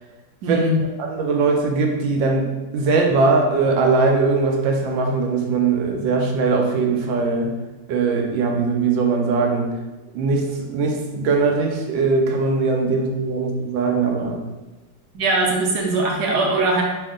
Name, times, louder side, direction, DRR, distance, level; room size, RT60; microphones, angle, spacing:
voice 1, 0.4-0.8 15.1-16.8, right 2 dB, 70° right, -1 dB, 1.2 m, -20 dB
voice 2, 1.0-7.5 7.9-9.7 10.1-14.4, right 4 dB, 90° right, 1 dB, 1.3 m, -20 dB
3.5 x 2.3 x 3.6 m, 1.1 s
omnidirectional pair, 2.0 m